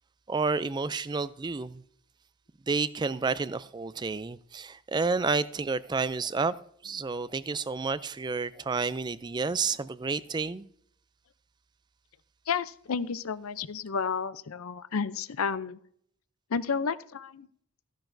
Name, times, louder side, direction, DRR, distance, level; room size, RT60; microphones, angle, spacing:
voice 1, 0.3-1.8 2.7-6.6 6.8-10.6, right 4 dB, 20° right, 0.3 m, -30 dB
voice 2, 12.5-15.8 16.5-17.5, left 6 dB, 85° left, 0.5 m, -31 dB
15.0 x 10.5 x 2.6 m
head